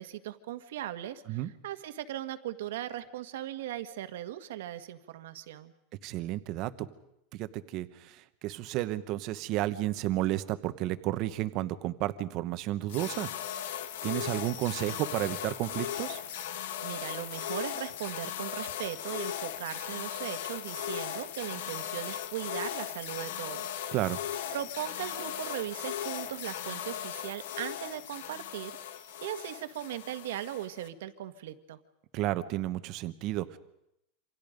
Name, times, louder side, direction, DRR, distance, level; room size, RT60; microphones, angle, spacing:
voice 1, 0.0-5.7 16.8-23.8 24.5-31.8, right 12 dB, 80° right, 9 dB, 1.7 m, -39 dB
voice 2, 6.0-6.9 7.3-13.3 14.0-16.2 23.9-24.2 32.1-33.6, right 15 dB, 35° right, 12 dB, 1.1 m, -32 dB
sound 1, 12.9-30.9, left 10 dB, 75° left, 1.6 m, -38 dB
28.0 x 26.5 x 5.3 m, 0.82 s
supercardioid pair, 175°, 0 cm